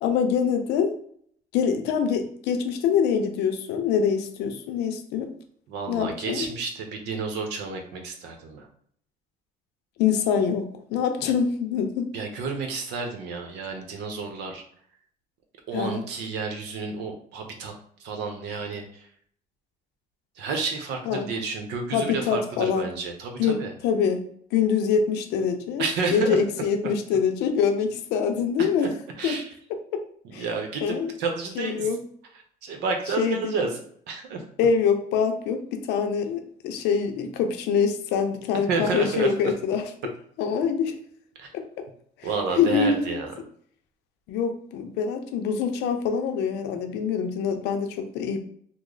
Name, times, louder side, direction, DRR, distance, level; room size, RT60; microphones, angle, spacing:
voice 1, 0.0-0.9 1.5-5.3 5.9-6.5 10.0-12.1 15.7-16.0 21.1-21.3 21.9-22.9 23.4-25.9 26.1-28.9 29.2-29.4 29.9-30.0 30.3-30.5 30.8-31.1 31.6-32.0 33.2-33.6 34.6-39.8 40.4-40.9 41.5-41.6 42.2-42.3 42.6-43.2 44.3-48.4, left 6 dB, 85° left, 6 dB, 0.6 m, -25 dB
voice 2, 5.7-8.7 12.1-14.6 15.7-17.7 18.0-19.1 20.4-23.7 25.8-26.4 28.6-28.7 29.2-29.4 30.3-31.9 32.6-33.7 34.1-34.4 38.7-39.3 41.4-41.5 42.2-43.3, right 4 dB, 90° right, 4 dB, 0.8 m, -30 dB
3.1 x 2.0 x 3.8 m, 0.63 s
cardioid pair, 110°, 17 cm